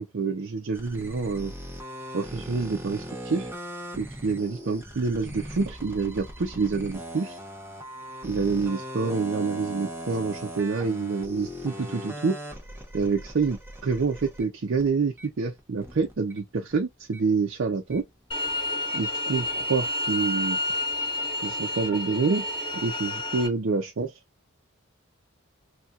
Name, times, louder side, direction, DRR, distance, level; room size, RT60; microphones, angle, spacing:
voice 1, 0.0-1.5 2.1-3.5 4.0-7.4 8.2-12.4 12.9-18.1 18.9-20.6 21.4-22.4 22.7-24.2, right 4 dB, 60° right, 0.5 m, -27 dB
sound 1, 0.7-16.4 16.6-19.0 19.3-19.8, equal, 10° right, 0.7 m, -40 dB
sound 2, 18.3-23.5, left 1 dB, 25° left, 1.3 m, -30 dB
4.1 x 2.2 x 2.4 m
head